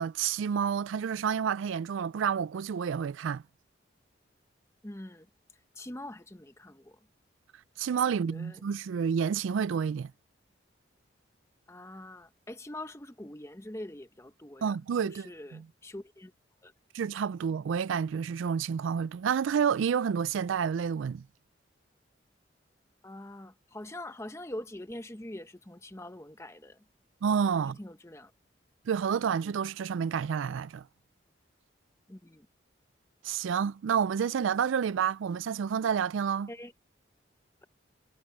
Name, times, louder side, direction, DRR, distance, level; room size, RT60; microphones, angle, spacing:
voice 1, 0.0-3.4 7.8-10.1 14.6-15.7 16.9-21.2 27.2-27.8 28.9-30.8 33.2-36.5, right 7 dB, 85° right, 0.3 m, -29 dB
voice 2, 4.8-5.3 5.8-7.0 8.1-8.6 11.7-14.7 15.0-16.3 16.6-16.7 23.0-26.8 27.6-28.3 32.1-32.5 36.5-36.7, left 1 dB, 15° left, 0.9 m, -44 dB
head